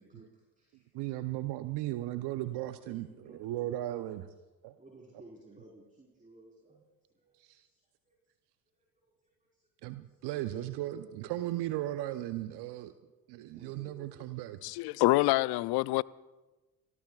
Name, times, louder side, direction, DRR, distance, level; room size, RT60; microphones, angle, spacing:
voice 1, 0.0-0.9 2.9-4.0 4.8-6.8 7.1-8.2 9.0-11.7 13.5-14.4, right 1 dB, 15° right, 4.3 m, -56 dB
voice 2, 0.9-4.3 4.6-4.7 7.4-7.6 9.8-12.9 13.3-14.6, right 15 dB, 60° right, 0.8 m, -36 dB
voice 3, 14.6-16.0, left 20 dB, 60° left, 0.6 m, -26 dB
28.0 x 19.5 x 2.4 m
hypercardioid pair, 65°, 45 cm